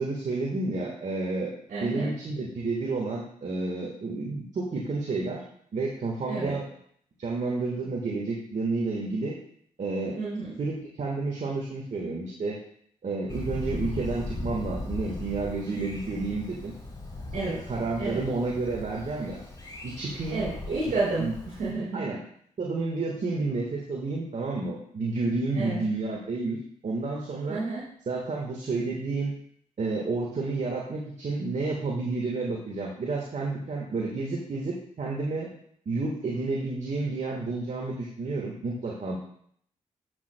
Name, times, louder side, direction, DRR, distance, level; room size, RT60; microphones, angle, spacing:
voice 1, 0.0-1.5 1.8-5.4 5.7-6.7 7.2-9.4 9.8-10.2 10.6-12.6 13.0-16.7 17.7-19.4 19.8-20.5 21.2-21.3 21.9-22.2 22.6-27.6 28.1-29.3 29.8-35.5 35.8-39.2, right 3 dB, 55° right, -2 dB, 1.5 m, -30 dB
voice 2, 1.7-2.1 6.3-6.6 10.2-10.6 17.3-17.6 18.0-18.2 20.3-22.1 25.5-25.8 27.5-27.9, right 3 dB, 70° right, -7 dB, 3.0 m, -30 dB
Thunder, 13.3-21.7, left 2 dB, 25° left, 3.5 m, -38 dB
13.0 x 6.3 x 2.2 m, 0.65 s
supercardioid pair, 50°, 15 cm